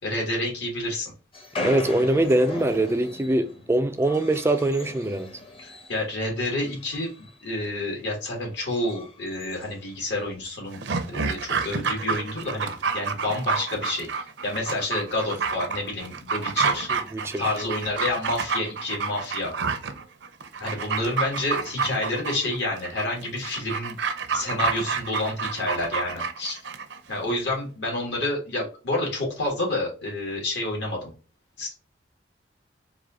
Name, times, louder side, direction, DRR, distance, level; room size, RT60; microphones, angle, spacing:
voice 1, 0.0-1.1 5.6-10.8 11.1-16.9 17.4-19.5 20.6-24.0 24.3-26.6 27.1-31.1 31.6-31.7, left 2 dB, 70° left, 2.1 m, -29 dB
sound 1, 1.3-6.1 6.4-7.4 7.8-8.0 8.5-10.5 10.8-10.9 11.1-11.2 11.5-12.0 12.8-12.9 13.8-14.1, left 1 dB, 30° left, 0.8 m, -38 dB
voice 2, 1.6-5.3 16.9-17.5, right 1 dB, 15° right, 0.3 m, -23 dB
Dog, 10.7-27.0 27.3-27.4, right 5 dB, 70° right, 0.6 m, -29 dB
4.0 x 2.7 x 3.7 m
head